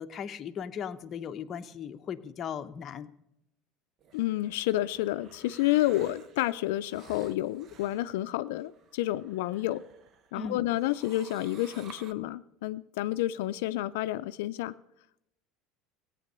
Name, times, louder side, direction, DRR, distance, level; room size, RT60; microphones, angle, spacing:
voice 1, 0.0-3.1 10.3-10.6, left 7 dB, 35° left, 7 dB, 0.8 m, -37 dB
sound 1, 4.0-10.3 10.7-12.1, right 7 dB, 40° right, 0.8 m, -54 dB
voice 2, 4.1-9.8 10.3-14.7, left 15 dB, 85° left, 11 dB, 0.4 m, -30 dB
16.5 x 9.2 x 6.7 m, 0.83 s
supercardioid pair, 135°, 0 cm